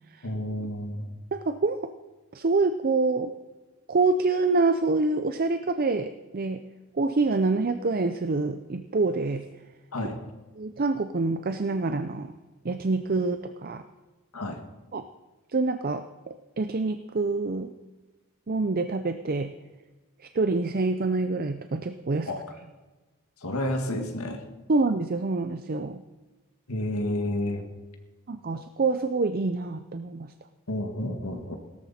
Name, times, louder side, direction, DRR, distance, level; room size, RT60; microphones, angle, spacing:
voice 1, 0.2-1.1 9.9-10.2 14.3-14.6 22.3-22.4 23.4-24.4 26.7-27.7 30.7-31.6, left 1 dB, 85° left, 4 dB, 1.9 m, -30 dB
voice 2, 1.3-1.8 2.3-3.3 3.9-6.6 7.0-9.4 10.6-12.3 12.6-13.8 14.9-15.0 15.5-17.7 18.5-19.5 20.2-22.3 24.7-26.0 28.3-30.3, right 3 dB, 40° right, 10 dB, 0.5 m, -26 dB
17.5 x 13.5 x 4.3 m, 1.2 s
head